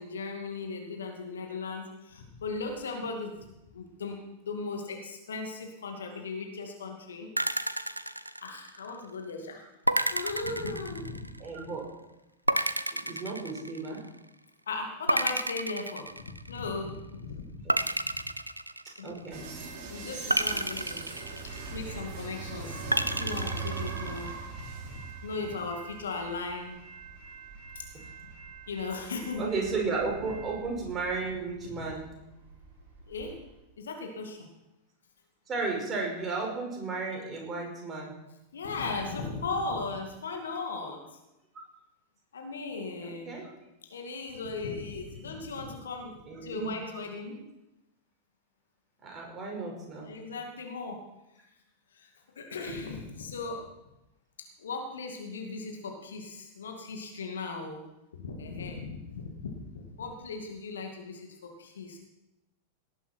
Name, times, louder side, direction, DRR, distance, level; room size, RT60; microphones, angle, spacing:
voice 1, 0.0-7.3 8.4-9.7 10.1-11.3 14.7-17.5 19.0-19.1 19.9-21.1 21.4-26.8 27.7-27.8 28.7-29.5 31.6-31.8 33.1-33.4 33.8-34.5 38.5-41.0 42.3-43.4 43.9-47.4 50.0-51.0 51.4-51.5 51.9-53.6 54.6-57.8 58.1-62.0, left 3 dB, 65° left, 3 dB, 2.3 m, -37 dB
sound 1, 7.4-9.0 9.9-11.5 12.5-14.2 15.1-16.7 17.7-19.4 20.3-22.0 22.9-24.3, right 1 dB, 85° right, 0.5 m, -31 dB
voice 2, 11.4-11.9 12.9-14.0 17.6-17.8 19.0-19.5 29.4-32.2 35.5-38.2 43.0-43.5 46.3-46.7 49.0-50.1, right 4 dB, 25° right, 0 dB, 5.3 m, -34 dB
sound 2, 19.3-33.4, right 4 dB, 40° right, 4.4 m, -41 dB
18.0 x 11.0 x 4.5 m, 0.93 s
figure-of-eight pair, 90°, 0 cm